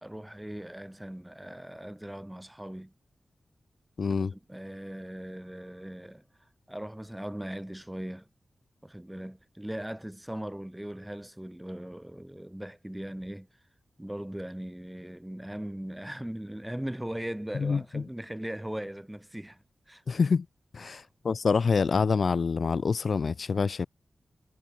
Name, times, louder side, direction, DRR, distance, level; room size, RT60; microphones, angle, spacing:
voice 1, 0.0-2.9 4.2-6.2 6.7-8.3 8.8-13.5 14.0-20.0 20.8-21.1, right 1 dB, 5° right, 2.0 m, -39 dB
voice 2, 4.0-4.3 17.5-18.0 20.1-20.5 20.7-23.9, left 5 dB, 55° left, 1.2 m, -26 dB
wide cardioid pair, 140°, 0 cm